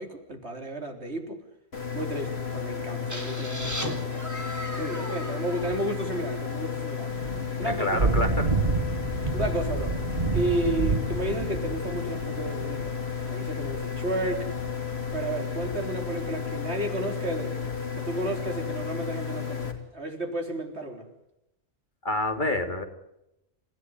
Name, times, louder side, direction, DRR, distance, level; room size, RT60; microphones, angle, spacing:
voice 1, 0.0-1.4 1.9-4.2 4.7-7.1 7.6-7.9 9.3-10.0 10.3-13.0 13.3-14.5 15.1-17.7 17.9-21.1, right 1 dB, 85° right, 4 dB, 4.0 m, -32 dB
sound 1, 1.7-19.7, left 6 dB, 75° left, 3.7 m, -33 dB
sound 2, 3.1-6.8, equal, 15° right, 3.7 m, -37 dB
Thunder / Rain, 7.0-16.6, right 4 dB, 40° right, 1.7 m, -30 dB
voice 2, 7.7-8.6 22.0-22.8, left 1 dB, 50° left, 5 dB, 3.0 m, -27 dB
28.5 x 16.0 x 9.9 m, 0.87 s
omnidirectional pair, 1.1 m